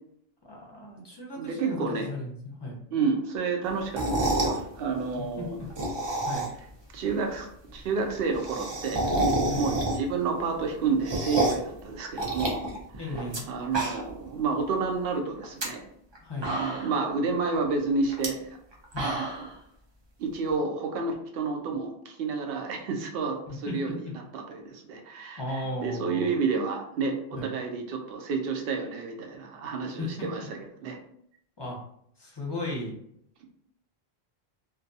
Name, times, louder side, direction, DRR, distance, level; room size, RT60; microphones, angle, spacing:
voice 1, 0.4-2.8 5.4-5.5 6.2-6.5 9.5-9.7 13.0-13.4 16.2-16.5 18.9-19.1 23.5-24.1 25.4-26.3 27.3-27.5 30.0-30.3 31.6-31.8 32.2-33.0, left 2 dB, 30° left, -2 dB, 0.6 m, -35 dB
voice 2, 1.4-2.1 2.9-5.6 6.9-9.1 9.6-12.6 13.0-13.2 13.5-15.9 16.4-18.6 19.0-19.5 20.2-31.0, right 4 dB, 70° right, 3 dB, 0.7 m, -30 dB
sound 1, 3.8-4.6 5.6-6.7 7.0-7.1 7.4-7.5 7.7-7.8 8.0-10.2 10.6-11.7 12.2-13.4 13.7-14.2 14.6-14.7 15.4-15.6 16.1-16.2 16.4-17.0 18.1-18.3 18.7-19.5, right 2 dB, 40° right, 0.4 m, -29 dB
2.4 x 2.2 x 2.6 m, 0.70 s
omnidirectional pair, 1.1 m